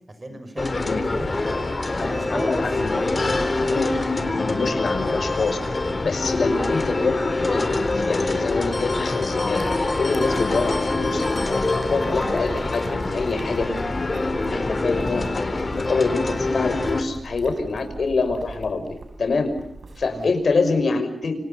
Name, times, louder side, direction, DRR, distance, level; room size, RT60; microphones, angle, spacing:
voice 1, 0.1-2.6 3.0-3.5 20.1-20.3, right 1 dB, 30° right, 9 dB, 6.0 m, -37 dB
sound 1, 0.6-17.0, left 2 dB, 40° left, 4.1 m, -25 dB
voice 2, 2.0-2.9 3.7-7.2 7.4-9.6 10.0-13.8 14.5-15.5 15.7-18.8 19.2-19.5 20.0-21.4, left 4 dB, 75° left, 7 dB, 5.9 m, -25 dB
sound 2, 9.5-20.7, right 3 dB, 70° right, 7.2 m, -40 dB
29.5 x 27.0 x 5.7 m, 0.74 s
wide cardioid pair, 100°, 0 cm